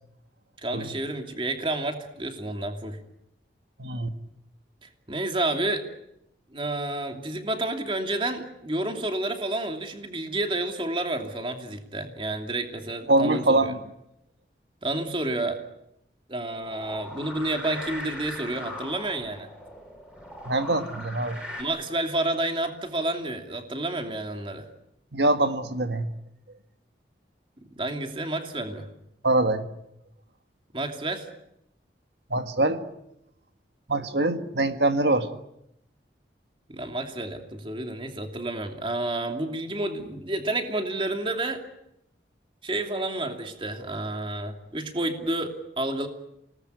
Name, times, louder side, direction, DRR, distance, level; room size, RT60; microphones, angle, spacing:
voice 1, 0.6-3.0 4.8-5.8 6.5-13.6 14.8-15.6 16.3-19.5 21.6-24.7 27.8-28.9 30.7-31.3 36.7-41.6 42.6-46.1, right 2 dB, 30° right, 4 dB, 2.8 m, -30 dB
voice 2, 3.8-4.1 13.1-13.8 20.5-21.4 25.1-26.1 29.2-29.7 32.3-32.8 33.9-35.3, right 2 dB, 70° right, 8 dB, 1.8 m, -23 dB
sound 1, 16.6-21.6, left 1 dB, 5° right, 6.1 m, -39 dB
28.0 x 19.5 x 9.5 m, 0.81 s
head